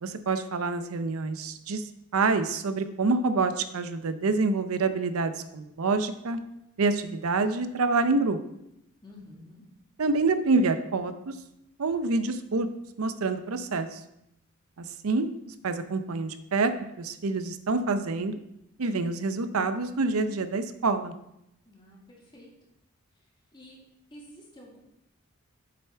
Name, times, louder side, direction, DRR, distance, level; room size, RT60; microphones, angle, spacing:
voice 1, 0.0-1.8 2.1-6.4 6.8-8.4 10.0-11.3 11.8-12.7 13.0-14.0 15.0-16.7 17.0-18.3 18.8-21.1, right 3 dB, 85° right, 10 dB, 0.6 m, -27 dB
voice 2, 9.0-9.6 21.7-22.7 23.5-23.8 24.1-24.8, left 1 dB, 20° left, -3 dB, 2.0 m, -50 dB
7.7 x 6.9 x 4.5 m, 0.83 s
head